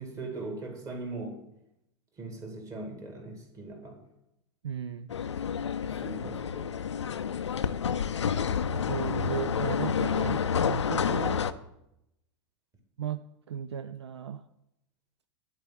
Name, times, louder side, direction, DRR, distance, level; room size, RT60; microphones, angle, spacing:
voice 1, 0.0-1.4 2.2-4.0 5.8-6.7, right 2 dB, 20° right, 3 dB, 2.2 m, -40 dB
voice 2, 4.6-5.1 8.7-11.4 13.0-13.2 13.5-14.4, right 9 dB, 65° right, 13 dB, 0.4 m, -35 dB
sound 1, 5.1-11.5, left 7 dB, 70° left, 0.5 m, -29 dB
10.5 x 4.8 x 7.6 m, 0.84 s
figure-of-eight pair, 95°, 15 cm